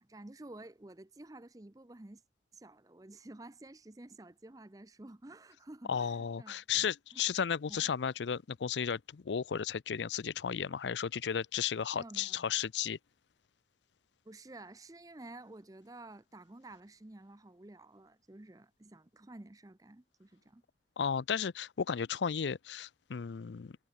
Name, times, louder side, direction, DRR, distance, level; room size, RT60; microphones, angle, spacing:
voice 1, 0.0-2.2 2.5-6.8 7.1-7.2 7.7-7.8 11.9-12.5 14.2-20.6, right 2 dB, 20° right, 0.6 m, -51 dB
voice 2, 5.9-13.0 21.0-23.8, left 7 dB, 90° left, 0.5 m, -34 dB
head